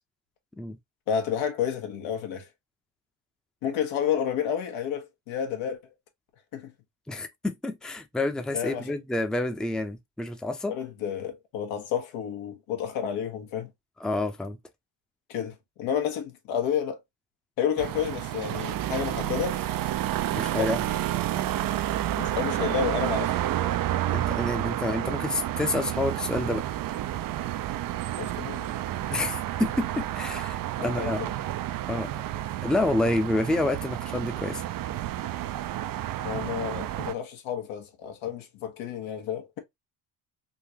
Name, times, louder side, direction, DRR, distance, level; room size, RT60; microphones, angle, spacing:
voice 1, 1.1-2.5 3.6-5.8 6.5-6.7 8.5-8.9 10.7-13.7 15.3-17.0 17.6-19.6 20.5-20.7 22.2-23.7 28.2-28.8 30.8-31.3 36.2-39.6, left 8 dB, 80° left, 1.3 m, -30 dB
voice 2, 7.1-10.7 14.0-14.6 20.3-20.8 24.1-26.7 29.1-31.2 31.9-32.1 32.6-34.6, left 2 dB, ahead, 0.6 m, -28 dB
sound 1, 17.8-37.1, right 13 dB, 50° right, 0.5 m, -30 dB
3.9 x 2.5 x 2.8 m
supercardioid pair, 75°, 46 cm